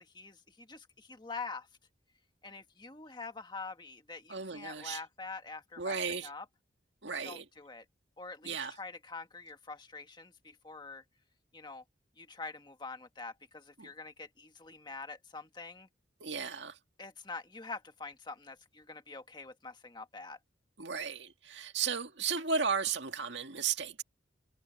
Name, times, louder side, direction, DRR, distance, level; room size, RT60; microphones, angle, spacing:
voice 1, 0.0-1.7 2.4-6.4 7.2-7.8 8.2-11.0 11.5-11.8 12.2-15.9 17.0-20.4, left 4 dB, 25° left, 1.6 m, -45 dB
voice 2, 4.3-5.0 5.8-6.3 7.0-7.5 8.4-8.8 13.8-13.9 16.2-16.8 20.8-24.0, right 6 dB, 70° right, 2.0 m, -34 dB
head